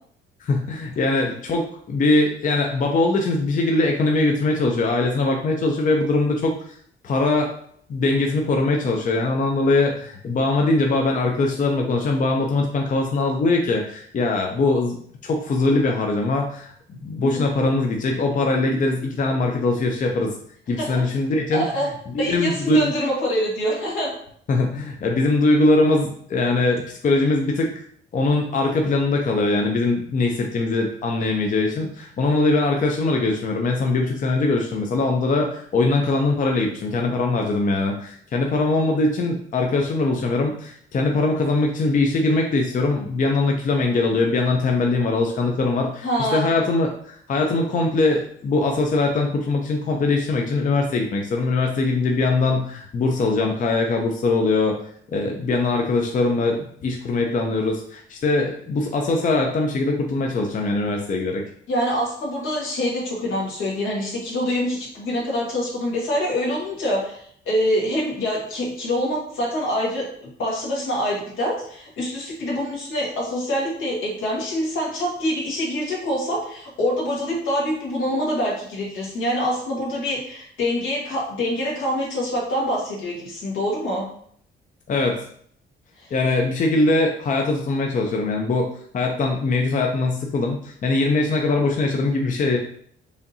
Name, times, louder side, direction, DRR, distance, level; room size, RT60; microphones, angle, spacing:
voice 1, 0.4-6.8 7.0-7.5 7.9-15.0 15.2-16.7 17.0-20.3 20.7-21.9 22.1-22.9 24.5-27.7 28.1-54.8 55.1-61.4 84.9-85.2 86.1-92.6, left 2 dB, 40° left, 2 dB, 0.6 m, -21 dB
voice 2, 21.5-21.9 22.2-24.1 46.0-46.5 61.7-84.0 86.0-86.1, equal, 80° left, -4 dB, 1.6 m, -25 dB
4.9 x 2.7 x 2.7 m, 0.62 s
cardioid pair, 90°, 20 cm